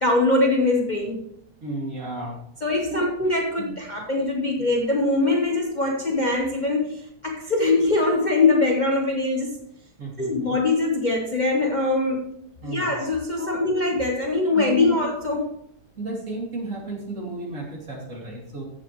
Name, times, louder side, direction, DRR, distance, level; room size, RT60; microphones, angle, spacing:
voice 1, 0.0-1.2 2.6-9.6 10.2-12.2 12.6-15.5, left 2 dB, 30° left, 0 dB, 1.0 m, -22 dB
voice 2, 1.6-2.4 2.9-3.1 3.6-3.7 10.0-10.5 12.6-12.9 13.4-13.6 14.5-15.0 16.0-18.7, right 2 dB, 50° right, -1 dB, 2.8 m, -33 dB
14.5 x 7.4 x 3.1 m, 0.72 s
omnidirectional pair, 1.8 m